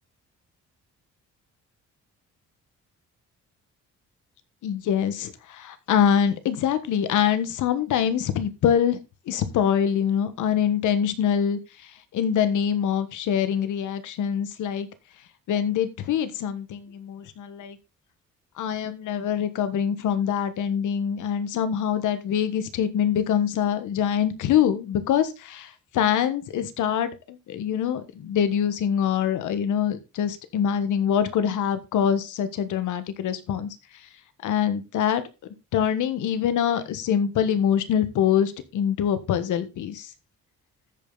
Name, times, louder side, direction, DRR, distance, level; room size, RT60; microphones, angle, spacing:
voice 1, 4.6-9.0 9.3-14.9 15.5-17.8 18.6-33.7 34.4-35.2 35.7-40.1, left 8 dB, 80° left, 12 dB, 1.4 m, -24 dB
14.0 x 5.4 x 3.9 m, 0.27 s
cardioid pair, 90°, 30 cm